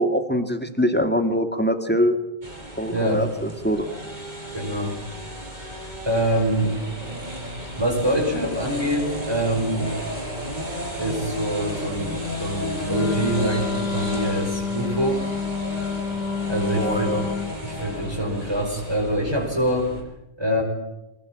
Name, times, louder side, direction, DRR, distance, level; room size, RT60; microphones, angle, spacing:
voice 1, 0.0-2.2 2.8-3.3 3.6-3.9 16.8-17.2, equal, 10° left, 7 dB, 2.4 m, -23 dB
sound 1, 2.4-20.0, equal, 45° right, 6.5 m, -33 dB
voice 2, 2.9-3.3 4.5-5.0 6.0-6.7 7.8-9.9 11.0-15.2 16.5-17.2 17.6-19.9 20.4-20.6, right 1 dB, 25° right, 0 dB, 5.7 m, -25 dB
Wind instrument woodwind instrument, 12.8-17.6, left 5 dB, 70° left, 1.9 m, -28 dB
24.5 x 21.0 x 9.1 m, 0.94 s
omnidirectional pair, 1.1 m